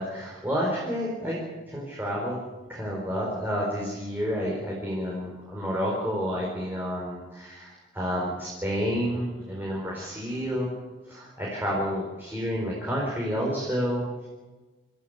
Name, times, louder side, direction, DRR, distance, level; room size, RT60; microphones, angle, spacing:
voice 1, 0.0-1.4 1.7-2.4 2.7-10.7 11.0-14.3, equal, 10° right, -4 dB, 4.4 m, -30 dB
27.5 x 14.0 x 8.1 m, 1.3 s
head